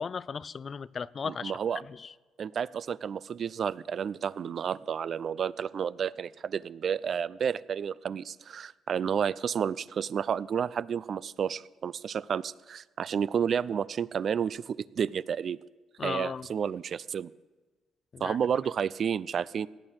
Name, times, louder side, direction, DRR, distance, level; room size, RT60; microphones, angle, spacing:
voice 1, 0.0-1.5 16.0-16.5 18.1-18.4, left 6 dB, 45° left, 0.4 m, -35 dB
voice 2, 1.2-1.8 2.4-15.6 16.0-17.3 18.2-19.7, right 7 dB, 55° right, 0.4 m, -31 dB
17.0 x 8.8 x 6.5 m
cardioid pair, 90°, 0 cm